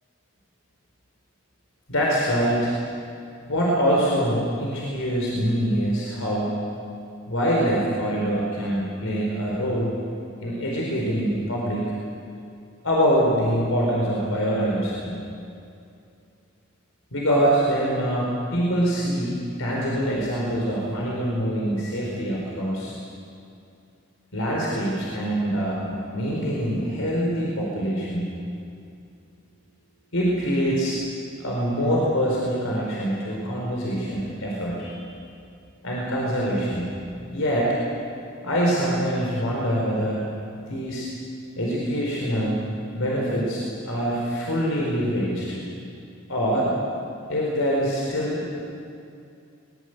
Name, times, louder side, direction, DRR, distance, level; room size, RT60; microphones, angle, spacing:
voice 1, 1.9-2.7 3.5-6.6 7.3-9.9 10.4-11.9 12.8-15.1 17.1-22.9 24.3-28.3 30.1-31.0 31.4-34.9 35.8-36.9 37.3-37.7 38.4-40.3 40.7-41.1 41.6-42.7 42.9-45.6 46.3-46.7 47.3-48.4, equal, 90° left, -4 dB, 4.7 m, -24 dB
23.0 x 21.0 x 8.1 m, 2.5 s
head